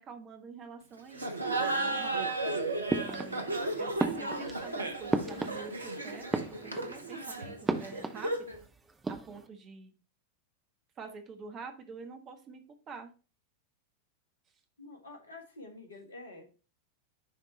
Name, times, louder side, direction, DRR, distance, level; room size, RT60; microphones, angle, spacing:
voice 1, 0.0-2.3 2.9-3.5 3.8-6.3 6.6-8.5 9.1-9.9 11.0-12.6 12.9-13.1, right 5 dB, 30° right, 5 dB, 1.2 m, -47 dB
Laughter, 1.1-8.6, right 2 dB, 80° right, 0.8 m, -34 dB
sound 1, 2.9-3.6 4.0-5.9 6.2-7.1 7.7-8.6 8.9-9.5, right 3 dB, 10° right, 0.6 m, -34 dB
voice 2, 14.8-16.5, left 2 dB, 75° left, 4 dB, 1.5 m, -48 dB
10.0 x 3.6 x 3.2 m, 0.34 s
figure-of-eight pair, 90°, 0 cm